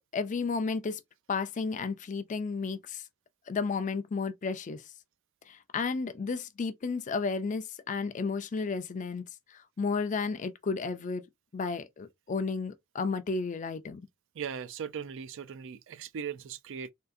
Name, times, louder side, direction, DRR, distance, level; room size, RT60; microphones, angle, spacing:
voice 1, 0.1-1.0 1.3-3.0 3.5-4.8 5.5-9.2 9.5-11.3 11.5-14.0, left 4 dB, 35° left, 0.4 m, -32 dB
voice 2, 14.4-16.9, right 7 dB, 60° right, 0.4 m, -38 dB
3.6 x 2.5 x 2.5 m
head